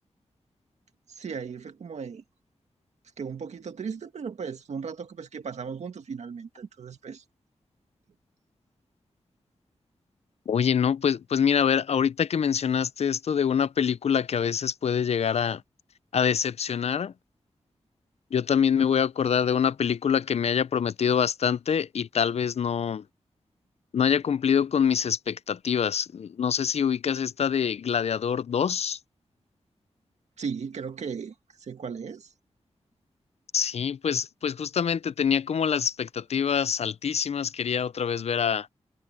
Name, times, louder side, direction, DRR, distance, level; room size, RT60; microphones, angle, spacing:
voice 1, 1.1-2.2 3.2-7.2 30.4-31.3 31.6-32.3, right 6 dB, 90° right, 2.1 m, -36 dB
voice 2, 10.5-15.6 16.1-17.1 18.3-23.0 23.9-29.0 33.5-38.7, left 7 dB, 70° left, 0.5 m, -25 dB
wide cardioid pair, 105°, 11 cm